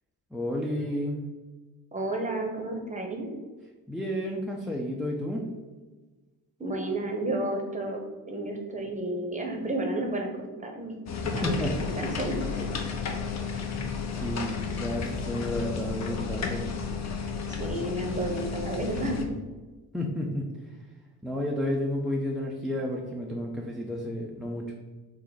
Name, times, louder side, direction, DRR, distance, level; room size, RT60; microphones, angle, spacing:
voice 1, 0.3-1.3 3.9-5.5 11.2-11.8 13.4-16.7 19.9-20.8 21.2-24.7, left 1 dB, ahead, -2 dB, 0.4 m, -32 dB
voice 2, 1.9-3.3 6.6-8.0 8.3-10.3 10.6-10.9 11.4-12.7 17.5-19.4, right 2 dB, 15° right, 2 dB, 0.8 m, -31 dB
sound 1, 11.1-19.2, left 5 dB, 40° left, 0.6 m, -32 dB
3.4 x 2.1 x 3.9 m, 1.2 s
supercardioid pair, 55°, 42 cm